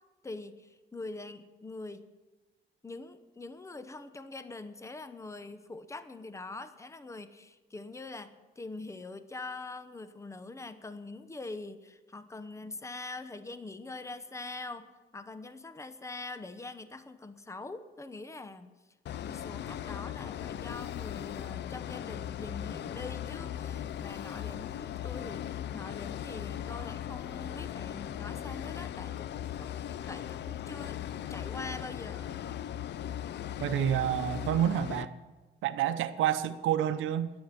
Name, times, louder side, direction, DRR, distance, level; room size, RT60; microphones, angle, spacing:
voice 1, 0.2-2.1 2.8-18.7 19.2-29.7 30.1-31.0 31.3-32.4, left 3 dB, 15° left, 0.9 m, -43 dB
sound 1, 19.1-35.1, left 10 dB, 60° left, 0.5 m, -38 dB
voice 2, 33.6-35.1 35.6-37.3, right 10 dB, 85° right, 0.8 m, -28 dB
10.5 x 7.9 x 9.7 m
cardioid pair, 90°, 20 cm